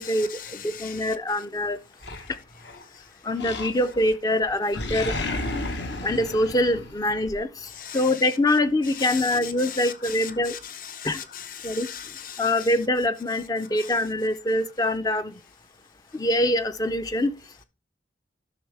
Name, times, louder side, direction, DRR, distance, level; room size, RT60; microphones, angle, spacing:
voice 1, 0.0-1.2 7.7-8.2 8.9-12.7 13.7-13.9, left 9 dB, 45° left, 0.8 m, -38 dB
voice 2, 0.6-1.8 3.2-5.1 6.0-10.6 11.0-11.2 11.6-11.9 12.4-15.3 16.1-17.3, left 1 dB, 20° left, 0.4 m, -24 dB
Animal, 2.0-2.8 3.4-4.1 4.4-7.4, left 2 dB, 65° left, 1.2 m, -32 dB
12.0 x 6.2 x 3.3 m
head